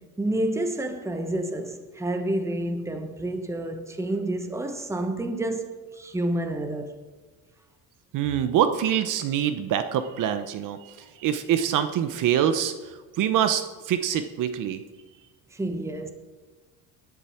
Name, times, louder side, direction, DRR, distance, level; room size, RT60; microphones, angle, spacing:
voice 1, 0.0-7.0 15.5-16.1, right 1 dB, 5° right, 1.1 m, -29 dB
voice 2, 8.1-10.8 11.2-12.7 13.2-14.8, right 9 dB, 55° right, 0.9 m, -24 dB
18.0 x 11.0 x 4.4 m
cardioid pair, 155°, 38 cm